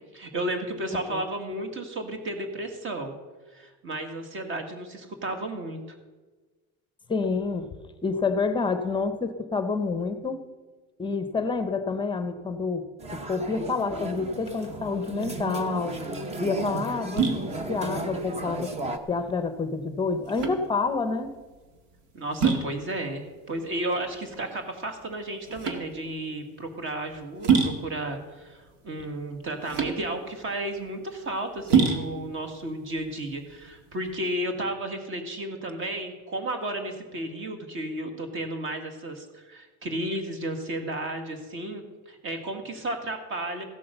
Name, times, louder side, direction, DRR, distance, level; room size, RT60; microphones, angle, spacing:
voice 1, 0.0-3.2 3.5-6.0 22.1-43.6, right 1 dB, 35° right, 5 dB, 2.0 m, -33 dB
voice 2, 7.1-7.7 8.0-10.4 11.0-12.9 13.1-16.0 16.4-18.7 19.1-21.3, left 4 dB, 15° left, 9 dB, 0.7 m, -28 dB
sound 1, 13.0-19.0, right 2 dB, 20° right, 0.8 m, -34 dB
sound 2, 15.6-34.1, right 6 dB, 90° right, 2.2 m, -29 dB
15.5 x 8.4 x 6.8 m, 1.3 s
cardioid pair, 165°, 32 cm